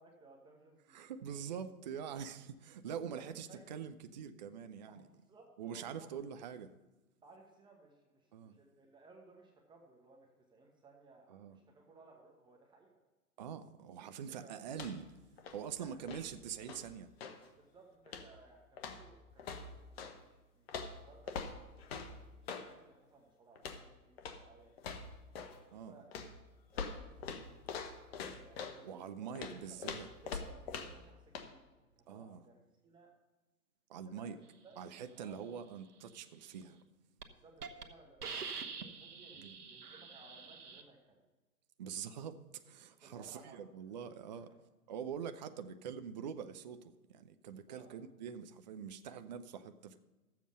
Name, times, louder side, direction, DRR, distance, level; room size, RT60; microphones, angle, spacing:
voice 1, 0.0-1.1 1.3-1.4 3.0-3.6 4.9-6.2 7.2-13.0 14.4-14.8 15.8-16.1 17.6-25.1 25.5-26.1 26.7-29.4 29.7-29.8 30.2-31.6 32.0-33.1 34.0-34.4 34.6-35.7 37.3-41.3 43.0-44.0 44.2-44.6 47.7-47.9, right 3 dB, 10° right, 1 dB, 1.0 m, -61 dB
voice 2, 0.9-5.0 5.6-6.8 8.3-8.6 11.3-11.6 13.4-15.1 15.5-17.1 25.7-25.9 28.8-30.4 32.1-32.4 33.9-34.4 34.8-36.8 39.4-39.6 41.8-44.5 44.9-50.0, right 7 dB, 30° right, 10 dB, 0.4 m, -44 dB
sound 1, 14.7-15.1 15.4-17.5 18.1-18.4 18.8-20.2 20.7-22.7 23.6-23.9 24.2-24.5 24.8-25.6 26.1-28.8 29.4-31.1 31.3-31.5, left 5 dB, 40° left, 1.2 m, -44 dB
Hiss, 36.6-36.8 37.2-37.3 37.6-37.8 38.2-40.8, right 5 dB, 85° right, 1.2 m, -45 dB
13.0 x 7.5 x 5.6 m, 1.1 s
hypercardioid pair, 135°, 45 cm